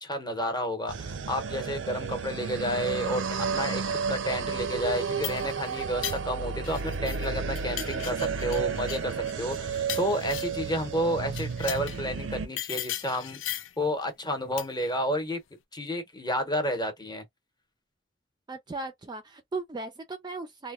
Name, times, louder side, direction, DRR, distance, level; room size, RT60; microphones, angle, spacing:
voice 1, 0.0-13.4 13.8-15.4 15.7-17.2, equal, 20° left, 0.8 m, -31 dB
sound 1, 0.9-12.5, right 5 dB, 80° right, 0.5 m, -32 dB
sound 2, 4.9-7.3 7.5-10.7 11.3-12.0 12.6-13.8 14.6-14.9, left 12 dB, 80° left, 0.4 m, -38 dB
voice 2, 18.5-20.7, right 3 dB, 25° right, 0.4 m, -37 dB
3.0 x 2.1 x 2.3 m
head